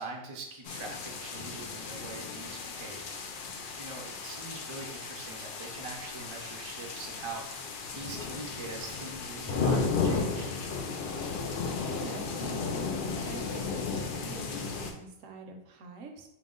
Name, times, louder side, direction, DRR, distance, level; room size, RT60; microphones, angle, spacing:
voice 1, 0.0-3.2 3.7-10.5, right 3 dB, 45° right, 0 dB, 0.3 m, -43 dB
sound 1, 0.6-14.9, left 4 dB, 80° left, 0.4 m, -34 dB
voice 2, 11.7-16.3, right 4 dB, 75° right, 3 dB, 1.0 m, -46 dB
4.8 x 2.0 x 3.7 m, 0.83 s
omnidirectional pair, 1.4 m